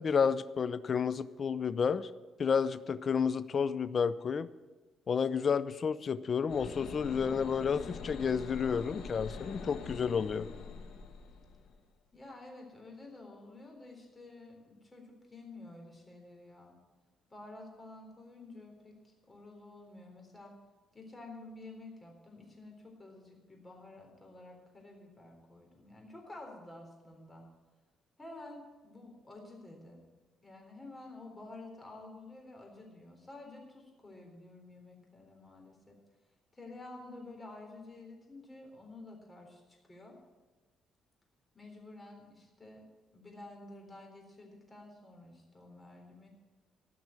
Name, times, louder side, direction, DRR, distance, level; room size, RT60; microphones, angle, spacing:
voice 1, 0.0-2.1 2.4-4.5 5.1-10.5, left 6 dB, 45° left, 16 dB, 0.5 m, -31 dB
sound 1, 6.5-11.8, left 5 dB, 85° left, 1.7 m, -44 dB
voice 2, 12.1-16.8 17.3-20.5 20.9-27.5 28.2-30.0 30.4-36.0 36.5-39.6 39.9-40.2 41.5-42.9 43.1-46.3, left 2 dB, 20° left, 1 dB, 3.8 m, -50 dB
15.0 x 6.1 x 9.4 m, 1.3 s
cardioid pair, 90°, 0 cm